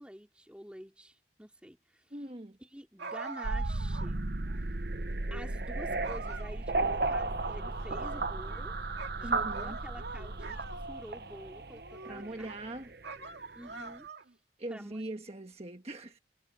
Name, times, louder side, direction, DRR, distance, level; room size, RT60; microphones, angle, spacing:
voice 1, 0.0-2.1 2.6-4.3 4.7-4.8 5.3-8.7 9.2-12.6 13.3-14.1 14.7-15.0, equal, 5° right, 2.7 m, -48 dB
voice 2, 2.1-2.6 9.2-9.8 12.1-12.9 14.6-16.2, right 1 dB, 35° right, 1.5 m, -41 dB
sound 1, 3.0-4.1 4.5-4.6 5.4-5.7 6.0-7.0 7.4-8.7 9.0-11.2 11.7-12.6 13.0-14.3, right 4 dB, 75° right, 2.3 m, -44 dB
sound 2, 3.4-13.5, right 2 dB, 60° right, 1.0 m, -35 dB
head